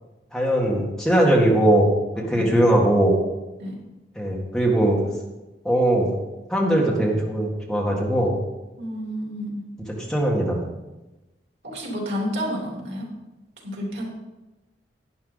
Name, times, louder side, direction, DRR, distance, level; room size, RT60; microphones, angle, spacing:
voice 1, 0.3-1.9 2.3-3.1 4.1-5.0 5.6-6.1 6.5-8.3 10.1-10.6, right 1 dB, 5° left, -3 dB, 1.7 m, -20 dB
voice 2, 2.2-2.6 3.6-3.8 8.8-9.7 11.6-13.1 13.6-14.0, equal, 80° right, -1 dB, 3.2 m, -30 dB
11.0 x 10.0 x 4.0 m, 1.1 s
head